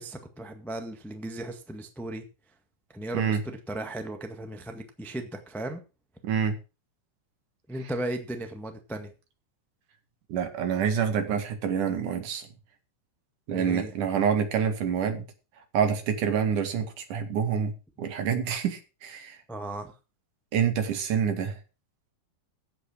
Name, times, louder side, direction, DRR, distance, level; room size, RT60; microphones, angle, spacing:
voice 1, 0.0-2.2 2.9-5.8 7.7-9.1 13.5-13.9 19.5-19.9, right 1 dB, 5° left, 6 dB, 0.3 m, -36 dB
voice 2, 6.2-6.6 10.3-12.4 13.5-15.3 15.7-17.7 18.0-19.4 20.5-21.6, right 7 dB, 75° right, 7 dB, 3.4 m, -27 dB
14.5 x 8.8 x 5.0 m, 0.31 s
omnidirectional pair, 3.7 m